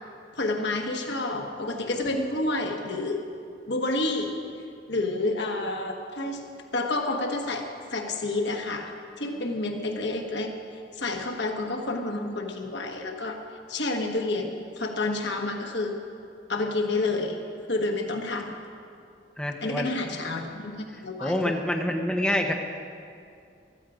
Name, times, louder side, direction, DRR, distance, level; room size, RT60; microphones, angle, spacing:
voice 1, 0.4-3.2 3.7-4.4 4.9-6.5 6.7-10.6 10.9-13.4 13.7-16.0 16.5-17.4 17.7-18.6 19.6-21.5, left 2 dB, 70° left, 3 dB, 1.3 m, -29 dB
voice 2, 19.4-19.9 21.2-22.5, left 1 dB, 5° left, 1 dB, 0.9 m, -26 dB
14.5 x 13.5 x 5.0 m, 2.4 s
head